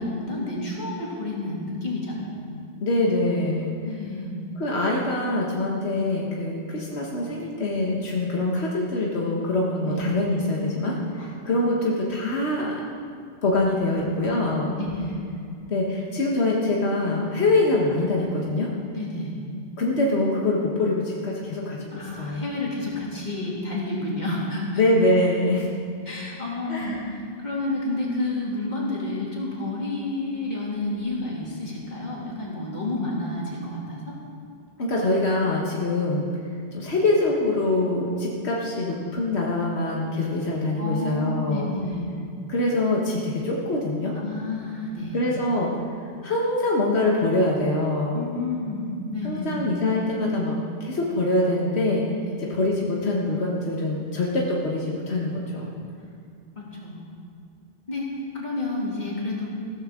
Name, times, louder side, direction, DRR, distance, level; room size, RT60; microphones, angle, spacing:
voice 1, 0.0-2.5 3.8-4.4 9.8-10.1 11.2-11.3 13.9-14.1 14.8-15.2 18.9-19.3 21.9-24.8 26.1-34.0 40.8-42.0 44.2-45.2 48.1-49.6 52.2-52.4 56.6-57.0 57.9-58.1 58.3-59.5, left 2 dB, 45° left, -5 dB, 2.8 m, -30 dB
voice 2, 2.8-3.7 4.6-12.8 13.4-14.7 15.7-18.7 19.8-22.5 24.8-25.7 26.7-27.1 34.8-36.3 36.7-41.7 42.5-44.1 45.1-45.7 46.2-48.3 49.2-52.0 52.4-55.7, left 2 dB, 80° left, -3 dB, 1.6 m, -24 dB
15.5 x 13.5 x 3.7 m, 2.3 s
omnidirectional pair, 1.1 m